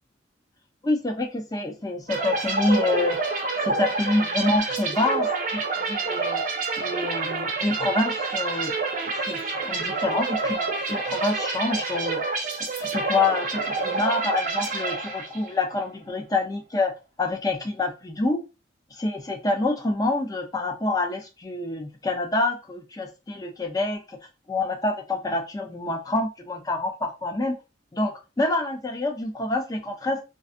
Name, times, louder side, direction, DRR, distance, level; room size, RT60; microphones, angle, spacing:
voice 1, 0.8-3.2 3.6-6.4 6.8-8.7 9.1-12.2 12.8-16.9 17.2-18.4 18.9-24.2 24.5-27.6 27.9-30.2, left 2 dB, 20° left, 3 dB, 0.4 m, -27 dB
sound 1, 2.1-15.6, right 3 dB, 45° right, 0.5 m, -28 dB
2.5 x 2.3 x 2.5 m, 0.28 s
head